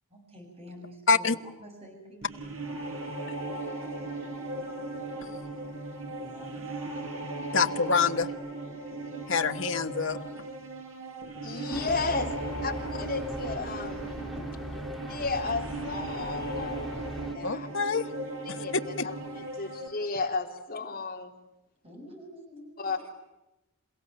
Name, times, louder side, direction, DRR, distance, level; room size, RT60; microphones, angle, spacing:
voice 1, 0.1-2.3 6.2-6.8 21.8-23.1, equal, 25° right, 7.4 m, -47 dB
sound 1, 2.2-19.9, right 2 dB, 65° right, 5.4 m, -37 dB
voice 2, 7.5-8.3 9.3-10.2 17.4-18.0 19.0-19.1, left 5 dB, 55° left, 1.2 m, -25 dB
voice 3, 11.4-12.3 12.6-14.1 15.1-16.8 17.3-17.7 18.4-21.3 22.8-23.0, left 3 dB, 40° left, 3.8 m, -33 dB
sound 2, 11.7-17.3, equal, ahead, 1.7 m, -41 dB
28.5 x 16.5 x 9.0 m
head